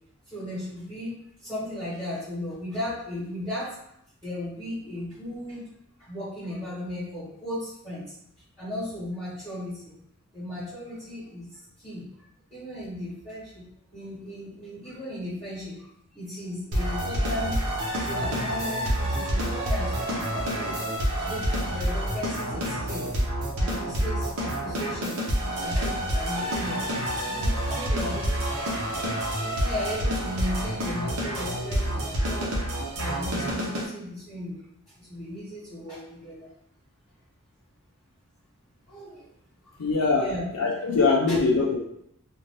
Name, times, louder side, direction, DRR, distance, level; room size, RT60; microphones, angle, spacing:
voice 1, 0.2-3.8 4.2-5.7 6.0-8.1 8.6-9.9 10.3-12.1 12.5-15.9 16.1-17.6 18.0-20.8 21.2-23.1 23.6-25.2 25.6-26.9 27.2-28.6 29.6-32.5 32.9-34.6 35.0-36.5 38.9-39.3 39.6-39.8 40.2-40.5 41.3-41.4, left 1 dB, 5° left, -11 dB, 1.1 m, -36 dB
sound 1, 16.7-33.9, equal, 65° right, 0.8 m, -28 dB
voice 2, 39.8-41.8, left 4 dB, 90° left, -1 dB, 0.5 m, -23 dB
2.5 x 2.5 x 3.2 m, 0.74 s
head